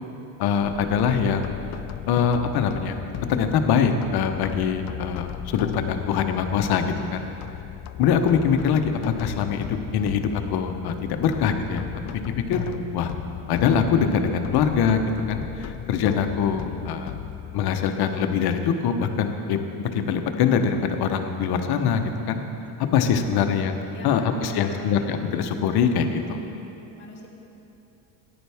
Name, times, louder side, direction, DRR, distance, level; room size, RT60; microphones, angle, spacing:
voice 1, 0.4-1.6 2.1-3.0 3.3-7.2 8.0-8.9 9.2-11.9 12.5-12.7 12.9-13.1 13.5-15.0 15.3-17.1 17.5-22.4 22.9-23.8 24.0-26.2, left 7 dB, 60° left, 6 dB, 1.0 m, -23 dB
sound 1, 0.6-17.8, left 10 dB, 40° left, 0.4 m, -36 dB
voice 2, 7.0-7.4 16.6-17.1 23.9-25.0 26.2-26.6 27.0-27.3, equal, 25° left, -5 dB, 2.6 m, -41 dB
14.0 x 10.5 x 3.5 m, 2.9 s
supercardioid pair, 100°, 44 cm